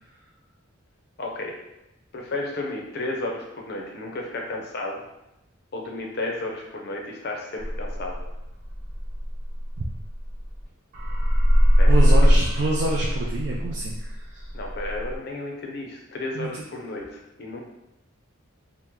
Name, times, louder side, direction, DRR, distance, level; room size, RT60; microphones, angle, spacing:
voice 1, 1.2-1.5 2.1-5.0 5.7-8.2 11.8-12.0 12.3-12.4 14.5-17.6, left 2 dB, 50° left, 0 dB, 0.6 m, -33 dB
sound 1, 7.6-10.6 10.9-15.2, equal, 40° right, 0.9 m, -21 dB
voice 2, 11.9-14.5 16.3-16.5, right 2 dB, 55° right, -2 dB, 0.4 m, -27 dB
3.0 x 2.1 x 3.5 m, 0.89 s
head